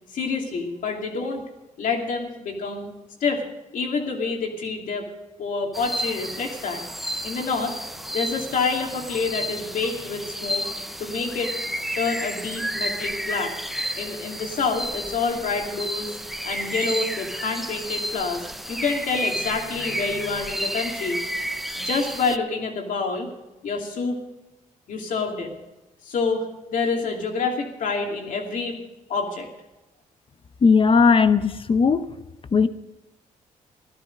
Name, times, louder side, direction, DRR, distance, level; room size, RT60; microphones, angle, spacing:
voice 1, 0.1-1.4 1.8-2.9 3.2-3.4 3.7-5.1 5.4-6.8 7.2-7.8 8.1-10.7 11.0-11.5 12.0-13.5 14.0-16.2 16.4-18.4 18.7-21.2 21.8-23.3 23.6-24.2 24.9-25.6 26.1-28.8 29.1-29.5, left 4 dB, 75° left, 2 dB, 2.6 m, -27 dB
sound 1, 5.7-22.4, equal, ahead, 0.6 m, -31 dB
voice 2, 30.6-32.0 32.5-32.7, left 5 dB, 40° left, 12 dB, 0.8 m, -17 dB
15.5 x 12.5 x 5.3 m, 1.0 s
cardioid pair, 90°, 14 cm